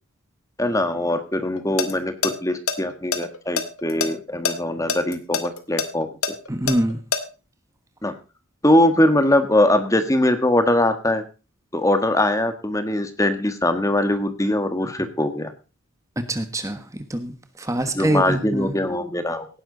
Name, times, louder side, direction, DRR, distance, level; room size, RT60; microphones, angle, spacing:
voice 1, 0.6-6.3 8.0-8.1 8.6-11.2 11.7-15.5 17.9-19.5, left 1 dB, 15° left, 9 dB, 1.5 m, -21 dB
sound 1, 1.6-1.9 2.2-2.3 2.7-4.1 4.4-4.5 4.9-7.2, left 5 dB, 90° left, 2.2 m, -24 dB
voice 2, 6.5-7.0 16.3-18.7, right 1 dB, 15° right, 9 dB, 1.3 m, -25 dB
17.5 x 10.5 x 4.0 m, 0.34 s
head